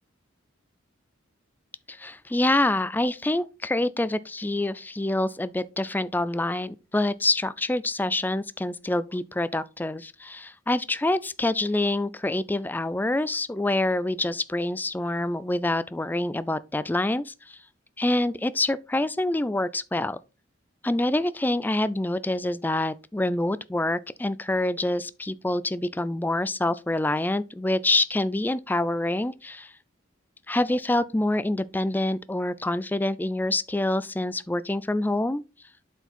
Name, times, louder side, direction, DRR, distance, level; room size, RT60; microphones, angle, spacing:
voice 1, 1.9-17.6 18.0-20.2 20.8-29.7 30.5-35.4, left 2 dB, 10° left, 0.3 m, -26 dB
7.9 x 4.6 x 4.3 m
head